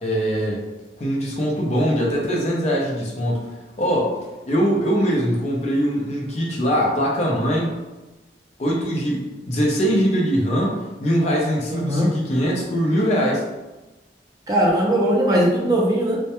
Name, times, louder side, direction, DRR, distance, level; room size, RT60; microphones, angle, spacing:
voice 1, 0.0-0.6 1.0-3.5 3.8-4.1 4.5-7.7 8.6-13.4, equal, 40° left, -3 dB, 0.5 m, -22 dB
voice 2, 11.7-12.1 14.5-16.2, right 1 dB, 20° right, -3 dB, 0.3 m, -19 dB
2.1 x 2.1 x 2.8 m, 1.1 s
head